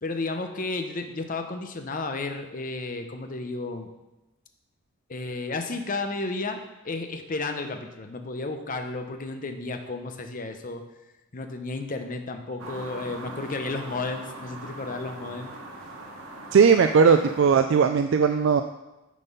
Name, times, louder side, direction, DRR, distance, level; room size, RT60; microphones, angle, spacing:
voice 1, 0.0-3.9 5.1-10.8 11.3-15.5 17.0-17.1, left 3 dB, 40° left, 6 dB, 0.7 m, -33 dB
sound 1, 12.6-17.6, right 2 dB, 80° right, 1.4 m, -41 dB
voice 2, 16.5-18.6, right 6 dB, 60° right, 7 dB, 0.3 m, -18 dB
9.2 x 4.1 x 5.3 m, 1.0 s
head